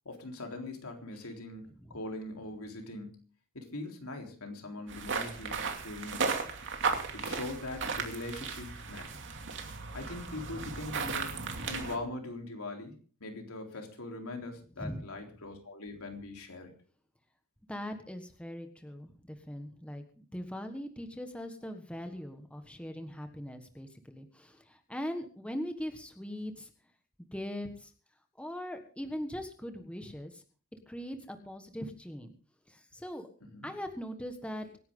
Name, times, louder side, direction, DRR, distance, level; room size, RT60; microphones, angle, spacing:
voice 1, 0.1-3.3 3.5-6.5 7.1-9.2 9.9-11.3 11.6-16.7 33.4-33.7, left 2 dB, 70° left, 3 dB, 3.8 m, -42 dB
sound 1, 4.9-12.0, right 4 dB, 60° right, 2.5 m, -35 dB
voice 2, 17.7-26.7 27.3-27.9 28.4-30.4 30.9-32.3 32.7-33.3 33.6-34.7, equal, 5° left, 6 dB, 1.4 m, -40 dB
25.5 x 10.5 x 3.8 m, 0.39 s
head